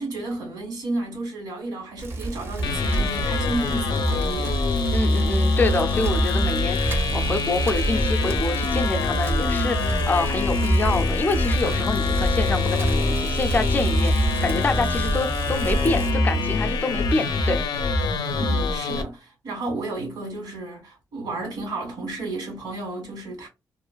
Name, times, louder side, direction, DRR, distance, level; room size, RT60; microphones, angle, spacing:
voice 1, 0.0-4.6 5.1-5.2 18.4-23.5, right 2 dB, 90° right, 1.4 m, -32 dB
Bicycle, 2.0-16.1, right 2 dB, 35° right, 0.4 m, -28 dB
sound 1, 2.6-19.0, left 2 dB, 85° left, 0.4 m, -24 dB
voice 2, 4.9-17.6, left 3 dB, 25° left, 0.3 m, -26 dB
2.4 x 2.2 x 2.2 m
wide cardioid pair, 145°, 7 cm